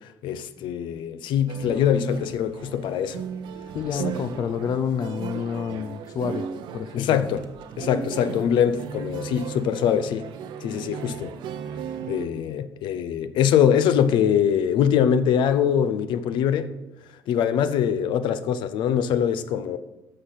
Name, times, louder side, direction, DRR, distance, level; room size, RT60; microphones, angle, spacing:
voice 1, 0.0-3.2 3.9-4.0 7.0-7.5 7.8-10.3 10.6-11.4 12.1-16.8 17.3-19.8, left 8 dB, 80° left, 0.7 m, -23 dB
sound 1, 1.5-12.3, right 7 dB, 85° right, 0.9 m, -36 dB
voice 2, 3.7-6.5 6.7-7.3, left 7 dB, 55° left, 0.5 m, -28 dB
11.5 x 6.4 x 5.9 m
cardioid pair, 135°, 8 cm